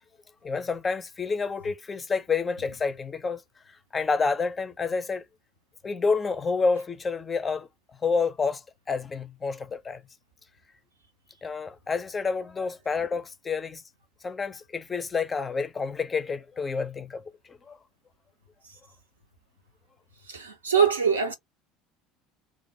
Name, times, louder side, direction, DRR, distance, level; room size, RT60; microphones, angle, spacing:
voice 1, 0.4-3.4 3.9-5.2 5.8-7.7 8.0-8.6 8.9-10.0 11.4-13.8 14.2-17.2 17.5-17.8, left 4 dB, 25° left, 0.4 m, -29 dB
voice 2, 20.3-21.3, right 6 dB, 80° right, 0.6 m, -23 dB
2.4 x 2.1 x 2.7 m
figure-of-eight pair, 65°, 0 cm